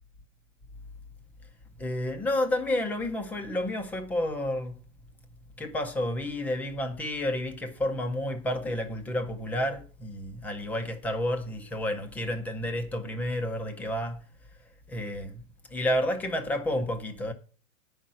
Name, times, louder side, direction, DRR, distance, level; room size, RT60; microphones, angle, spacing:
voice 1, 1.8-4.8 5.6-14.2 14.9-15.4 15.7-17.3, left 1 dB, 5° left, 0.5 m, -30 dB
9.4 x 5.6 x 7.3 m
hypercardioid pair, 155°, 39 cm